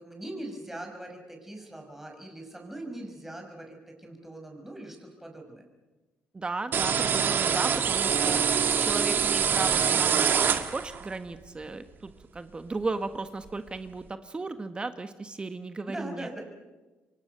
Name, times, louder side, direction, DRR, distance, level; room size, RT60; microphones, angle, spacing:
voice 1, 0.0-5.6 15.9-16.4, right 1 dB, 5° right, 2 dB, 6.0 m, -41 dB
voice 2, 6.3-8.4 8.8-16.3, right 3 dB, 25° right, 9 dB, 1.4 m, -35 dB
sound 1, 6.7-11.1, right 7 dB, 50° right, 1.9 m, -25 dB
28.5 x 23.5 x 6.8 m, 1.2 s
cardioid pair, 105°, 4 cm